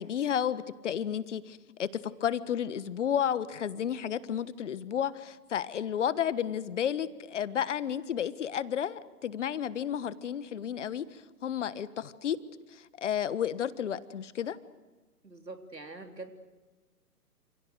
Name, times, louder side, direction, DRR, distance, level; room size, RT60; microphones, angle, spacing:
voice 1, 0.0-12.4 12.7-14.6, left 9 dB, 45° left, 16 dB, 1.4 m, -32 dB
voice 2, 15.2-16.3, right 3 dB, 85° right, 6 dB, 3.8 m, -44 dB
29.5 x 28.0 x 6.5 m, 1.2 s
figure-of-eight pair, 125°, 49 cm